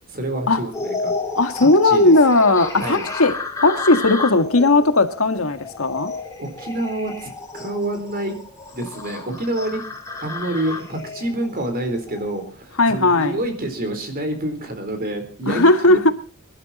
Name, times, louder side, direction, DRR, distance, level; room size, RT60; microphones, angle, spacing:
voice 1, 0.1-1.1 1.8-2.1 2.8-3.0 6.4-8.3 8.7-9.8 10.2-16.1, right 1 dB, 45° right, 4.0 m, -27 dB
sound 1, 0.7-12.5, left 3 dB, 15° left, 3.3 m, -32 dB
voice 2, 1.4-3.4 3.6-6.1 12.8-13.4 15.5-16.1, left 2 dB, 90° left, 1.7 m, -16 dB
24.5 x 12.0 x 4.2 m
head